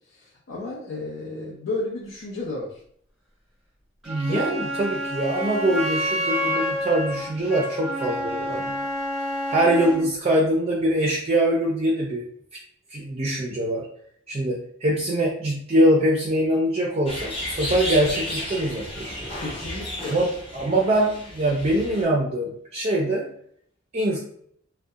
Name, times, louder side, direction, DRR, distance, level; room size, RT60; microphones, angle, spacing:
voice 1, 0.1-2.8 4.3-4.5 13.0-13.1 19.4-20.2, left 2 dB, 85° left, -6 dB, 0.6 m, -32 dB
Wind instrument woodwind instrument, 4.0-10.1, equal, ahead, 0.8 m, -28 dB
voice 2, 4.1-8.7 9.5-12.2 12.9-13.9 14.3-19.3 20.1-20.3 20.5-23.2 23.9-24.2, right 1 dB, 30° right, -2 dB, 0.4 m, -23 dB
sound 1, 17.1-22.0, left 1 dB, 30° left, 0.7 m, -33 dB
2.7 x 2.1 x 2.3 m, 0.64 s
head